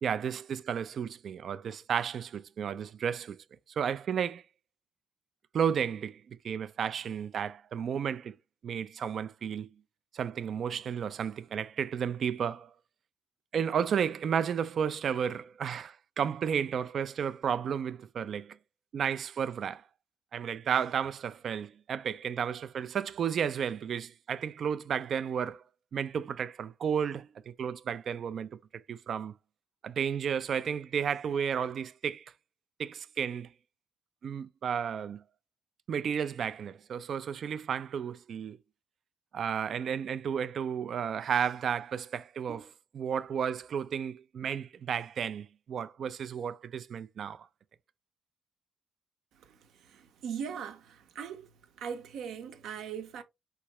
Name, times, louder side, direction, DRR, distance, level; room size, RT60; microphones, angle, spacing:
voice 1, 0.0-3.4 3.7-4.4 5.5-8.4 8.6-9.7 10.1-12.7 13.5-18.6 18.9-19.8 20.3-25.6 25.9-29.3 29.8-32.3 32.8-33.5 34.2-35.2 35.9-38.6 39.3-47.5, right 7 dB, 60° right, 0.3 m, -33 dB
voice 2, 49.9-51.5 51.8-53.2, right 7 dB, 80° right, 0.8 m, -39 dB
4.7 x 3.2 x 2.9 m
cardioid pair, 90°, 0 cm